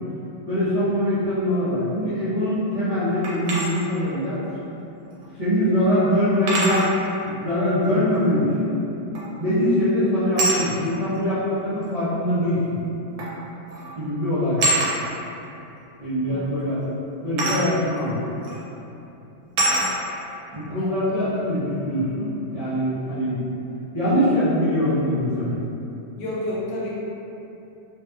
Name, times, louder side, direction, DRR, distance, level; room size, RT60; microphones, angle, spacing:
voice 1, 0.5-4.4 5.3-6.9 7.2-8.7 9.4-12.8 13.9-14.7 16.0-16.8 17.2-18.2 20.5-23.5 23.9-25.6, equal, 40° right, -16 dB, 0.5 m, -23 dB
sound 1, 3.2-3.7 5.2-5.3 6.5-6.9 9.1-9.5 10.4-10.6 11.8-11.9 13.2-13.4 13.7-13.9 14.6-14.9 17.4-17.6 18.4-18.6 19.6-19.9, right 2 dB, 85° right, 1.3 m, -23 dB
voice 2, 26.2-26.9, left 1 dB, 70° left, -8 dB, 1.2 m, -31 dB
3.3 x 2.8 x 2.3 m, 2.9 s
omnidirectional pair, 1.9 m